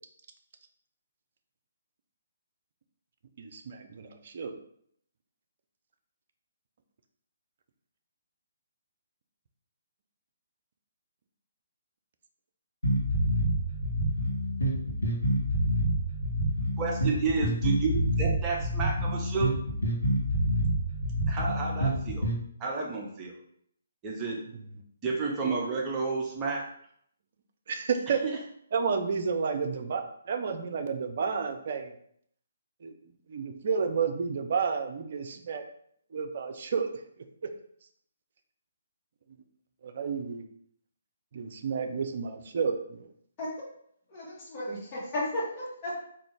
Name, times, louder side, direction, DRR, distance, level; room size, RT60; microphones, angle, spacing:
voice 1, 3.4-4.6 27.7-28.2 28.7-31.9 32.8-32.9 33.3-35.6 36.1-36.9 39.8-40.5 41.3-43.1, right 5 dB, 50° right, 6 dB, 0.5 m, -31 dB
sound 1, 12.8-22.4, right 1 dB, 75° left, 1.4 m, -27 dB
voice 2, 16.8-19.5 21.3-22.3 22.6-23.3 24.0-24.4 25.0-26.7 28.2-28.4, right 4 dB, 20° right, -2 dB, 0.7 m, -31 dB
voice 3, 44.1-45.9, left 1 dB, 25° left, -7 dB, 1.5 m, -34 dB
3.8 x 2.7 x 3.6 m, 0.67 s
figure-of-eight pair, 135°, 0 cm